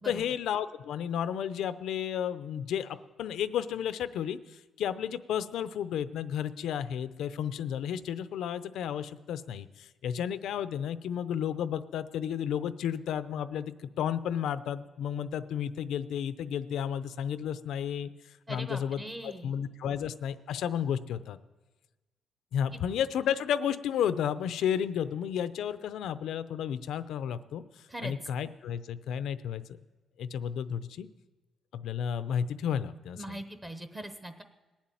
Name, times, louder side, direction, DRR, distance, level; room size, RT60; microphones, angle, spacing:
voice 1, 0.0-4.4 4.8-18.1 18.5-21.4 22.5-27.6 28.0-29.6 30.2-31.1 31.7-33.4, left 9 dB, 85° left, 13 dB, 0.6 m, -32 dB
voice 2, 18.5-19.5 27.9-28.1 33.2-34.4, right 1 dB, 15° right, 8 dB, 0.8 m, -40 dB
19.5 x 7.3 x 9.1 m, 1.2 s
cardioid pair, 160°, 0 cm